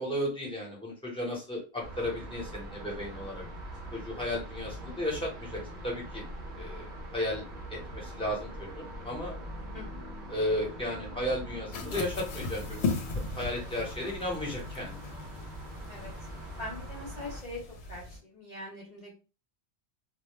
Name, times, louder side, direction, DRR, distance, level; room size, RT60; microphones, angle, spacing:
voice 1, 0.0-3.4 3.9-6.2 6.6-7.4 7.7-9.3 10.3-12.9 13.3-15.0, left 1 dB, 5° left, -3 dB, 0.8 m, -34 dB
sound 1, 1.8-17.4, equal, 50° right, 0.7 m, -43 dB
voice 2, 9.7-10.1 15.9-16.1 16.6-17.6 17.9-19.2, left 2 dB, 45° left, -4 dB, 0.7 m, -42 dB
sound 2, 11.7-18.2, left 4 dB, 80° left, 0.8 m, -38 dB
2.2 x 2.1 x 3.0 m, 0.33 s
omnidirectional pair, 1.1 m